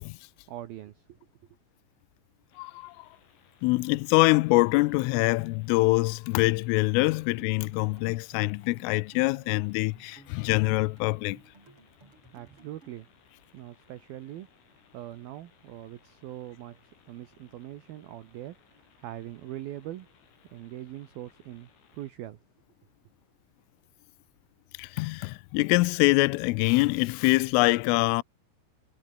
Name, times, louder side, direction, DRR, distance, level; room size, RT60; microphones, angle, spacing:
voice 1, 0.5-1.2 12.3-13.1 13.5-20.1 20.5-22.4, right 13 dB, 75° right, 2.2 m, -42 dB
sound 1, 2.5-22.1, left 7 dB, 65° left, 7.0 m, -63 dB
voice 2, 2.6-3.1 3.6-11.4 24.8-28.2, left 23 dB, 85° left, 3.1 m, -24 dB
sound 2, 6.5-13.0, right 3 dB, 25° right, 6.2 m, -57 dB
omnidirectional pair, 5.9 m